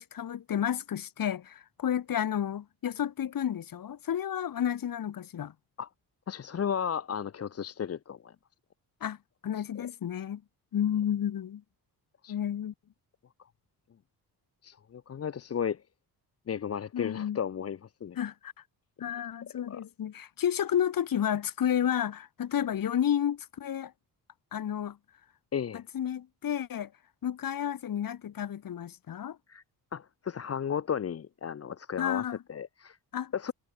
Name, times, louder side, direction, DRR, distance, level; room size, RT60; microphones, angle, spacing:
voice 1, 0.0-5.5 9.0-9.2 9.4-10.4 10.7-11.6 12.3-12.7 16.9-17.4 18.2-18.5 19.0-23.9 24.5-25.0 25.7-26.9 27.2-29.4 32.0-32.4 33.1-33.3, left 9 dB, 60° left, 5.1 m, -31 dB
voice 2, 6.3-8.3 9.6-9.9 12.2-12.3 14.6-15.8 16.5-18.2 19.7-19.8 25.5-25.8 29.5-29.6 29.9-33.0 33.3-33.5, left 8 dB, 40° left, 1.1 m, -34 dB
wide cardioid pair, 160°, 39 cm